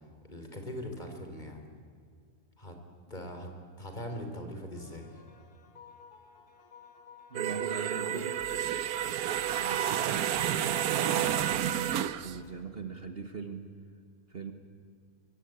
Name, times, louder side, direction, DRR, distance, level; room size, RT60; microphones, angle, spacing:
voice 1, 0.3-1.6 2.6-2.8 3.1-3.5 3.8-5.1, equal, 30° left, 4 dB, 3.7 m, -40 dB
sound 1, 4.7-12.7, left 4 dB, 90° left, 2.8 m, -55 dB
voice 2, 7.3-8.5 9.5-13.7 14.3-14.5, right 5 dB, 40° right, 7 dB, 1.7 m, -41 dB
sound 2, 7.3-12.4, right 10 dB, 75° right, 1.3 m, -30 dB
25.0 x 23.5 x 8.9 m, 2.3 s
omnidirectional pair, 1.6 m